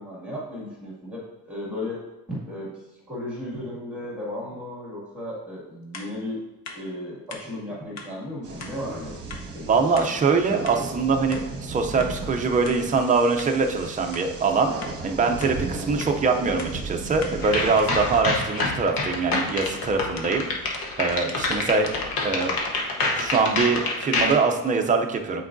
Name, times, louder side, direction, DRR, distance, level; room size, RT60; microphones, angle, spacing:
voice 1, 0.0-2.0 2.3-2.7 3.1-6.4 6.7-9.2 9.5-10.0, left 1 dB, 5° right, -7 dB, 1.9 m, -35 dB
sound 1, 5.9-6.1 6.6-6.8 7.3-7.4 8.0-8.1 8.6-8.7 9.3-9.4 10.0-10.1 10.7-10.8 11.3-11.5 12.0-12.1 12.6-12.8 13.4-13.5 14.1-14.3 14.8-14.9 15.4-15.5 16.0-16.1 16.6-16.7 17.2-17.4 17.8-17.9 18.4-18.5 19.6-22.8, left 3 dB, 50° left, 0.8 m, -41 dB
sound 2, 8.4-18.2, right 3 dB, 45° right, 1.0 m, -36 dB
voice 2, 9.7-14.7 15.0-21.9 22.2-22.6 23.2-25.4, right 4 dB, 25° right, 3 dB, 0.4 m, -23 dB
sound 3, 17.4-24.3, left 3 dB, 80° left, 1.0 m, -27 dB
8.3 x 4.6 x 2.6 m, 1.0 s
cardioid pair, 170°, 35 cm